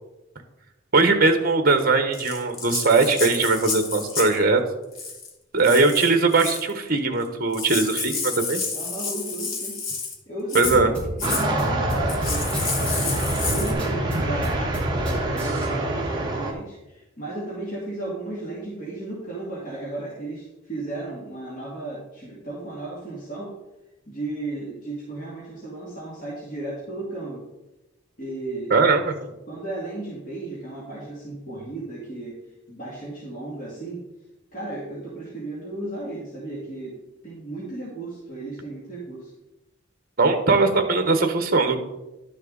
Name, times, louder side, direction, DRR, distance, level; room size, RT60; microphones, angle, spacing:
voice 1, 0.9-4.6 5.5-8.6 10.5-10.9 28.7-29.2 40.2-41.8, right 3 dB, 45° right, 7 dB, 1.2 m, -20 dB
Rattle (instrument), 2.1-4.4 4.9-5.3 5.6-6.7 7.2-7.3 7.5-10.2 10.5-10.8 11.2-11.5 12.1-13.7, left 4 dB, 85° left, 1.8 m, -30 dB
voice 2, 8.7-9.8 10.3-13.2 13.5-14.7 15.0-23.5 24.1-27.5 28.2-28.7 29.5-32.4 32.7-34.0 34.5-37.0 37.2-39.3, right 2 dB, 40° left, -7 dB, 2.4 m, -34 dB
sound 1, 10.6-15.7, equal, 5° left, 2.6 m, -31 dB
sound 2, 11.2-16.5, right 1 dB, 20° right, 1.4 m, -26 dB
11.5 x 6.4 x 4.0 m, 1.0 s
head